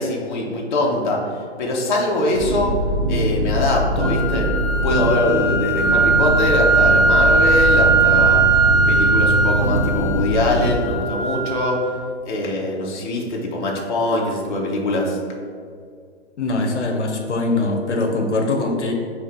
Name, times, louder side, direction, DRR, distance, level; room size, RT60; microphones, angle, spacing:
voice 1, 0.0-4.5 4.8-8.6 8.9-11.9 12.3-15.2, left 1 dB, 45° left, -1 dB, 0.8 m, -22 dB
sound 1, 2.3-10.7, right 1 dB, 25° right, 0.6 m, -22 dB
sound 2, 4.0-12.0, right 3 dB, 85° right, 0.7 m, -19 dB
voice 2, 16.4-18.9, left 2 dB, 90° left, 2 dB, 0.7 m, -22 dB
5.0 x 2.9 x 3.6 m, 2.2 s
hypercardioid pair, 140°, 34 cm